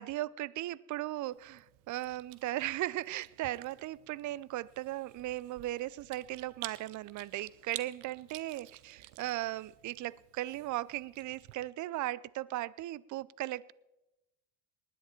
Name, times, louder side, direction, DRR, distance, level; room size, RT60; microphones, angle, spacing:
voice 1, 0.0-13.7, right 15 dB, 45° right, 23 dB, 0.5 m, -37 dB
Chewing mastication, 1.3-11.5, right 16 dB, 65° right, 0.9 m, -51 dB
19.0 x 10.0 x 4.4 m, 0.97 s
hypercardioid pair, 65°, 43 cm